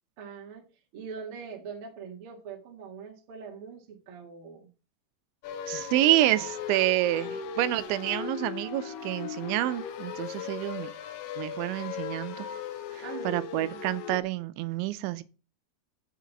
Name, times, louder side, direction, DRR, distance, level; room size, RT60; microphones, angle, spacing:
voice 1, 0.2-0.6 0.9-4.7 13.0-13.8, right 6 dB, 50° right, 1.7 m, -42 dB
sound 1, 5.4-14.2, left 8 dB, 75° left, 2.1 m, -38 dB
voice 2, 5.7-10.9 11.4-12.5 12.9-15.2, right 15 dB, 85° right, 3.0 m, -28 dB
7.5 x 5.8 x 7.1 m
omnidirectional pair, 5.3 m